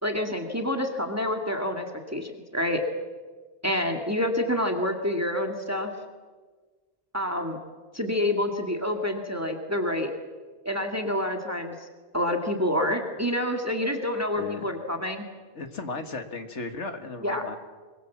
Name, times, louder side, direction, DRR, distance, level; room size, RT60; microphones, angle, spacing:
voice 1, 0.0-2.8 3.6-5.9 7.1-7.6 7.9-10.1 10.7-11.7 12.1-15.3 17.2-17.4, left 1 dB, 15° right, 3 dB, 2.1 m, -27 dB
voice 2, 14.4-14.8 15.6-17.6, left 3 dB, 85° left, 7 dB, 2.2 m, -36 dB
25.5 x 23.5 x 7.3 m, 1.4 s
omnidirectional pair, 1.2 m